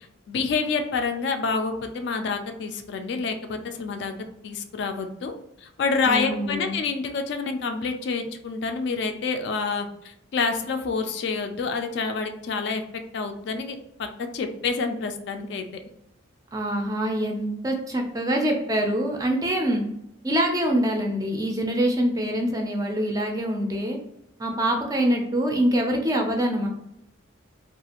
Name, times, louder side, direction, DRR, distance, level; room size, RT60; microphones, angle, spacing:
voice 1, 0.3-4.1 4.4-5.3 5.6-12.8 13.1-14.1 14.3-15.7, left 4 dB, 60° left, 6 dB, 0.3 m, -28 dB
voice 2, 6.0-6.8 16.5-19.9 20.2-24.0 24.4-26.7, right 1 dB, 20° right, 2 dB, 0.4 m, -25 dB
2.4 x 2.4 x 2.8 m, 0.80 s
head